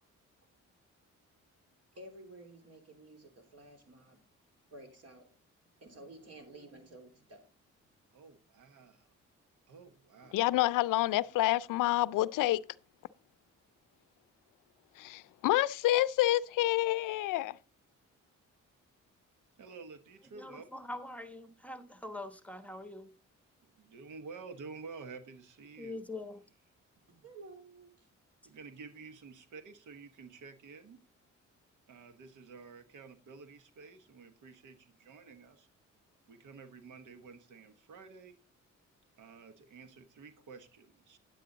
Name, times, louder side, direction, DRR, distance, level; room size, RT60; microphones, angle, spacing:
voice 1, 1.9-4.2 4.7-5.3 5.8-7.4 27.1-28.1, right 2 dB, 50° right, 3.4 m, -52 dB
voice 2, 8.1-9.0 9.7-10.4 19.6-20.6 23.7-26.0 28.4-31.0 31.9-35.7 36.3-38.4 39.2-41.2, right 4 dB, 75° right, 1.3 m, -50 dB
voice 3, 10.3-12.6 15.0-17.6, left 16 dB, 90° left, 0.5 m, -28 dB
voice 4, 20.4-23.1 25.8-26.4, left 2 dB, 5° left, 1.2 m, -43 dB
9.8 x 8.4 x 3.9 m
cardioid pair, 75°, 31 cm